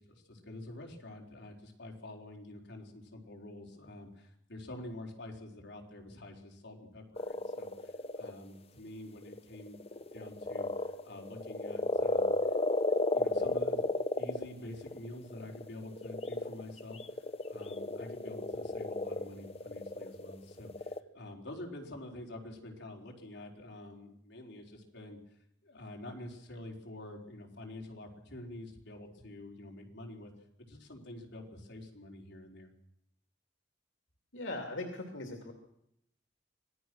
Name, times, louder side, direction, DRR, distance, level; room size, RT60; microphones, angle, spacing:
voice 1, 0.0-12.3 12.9-17.2 17.5-25.2 25.6-30.3 30.7-32.7, left 1 dB, 60° left, 0 dB, 4.3 m, -47 dB
sound 1, 7.2-8.3 9.3-21.0, left 2 dB, 30° left, 0.9 m, -33 dB
voice 2, 34.3-35.5, left 2 dB, 80° left, 3 dB, 2.7 m, -39 dB
25.5 x 18.0 x 6.3 m, 0.76 s
head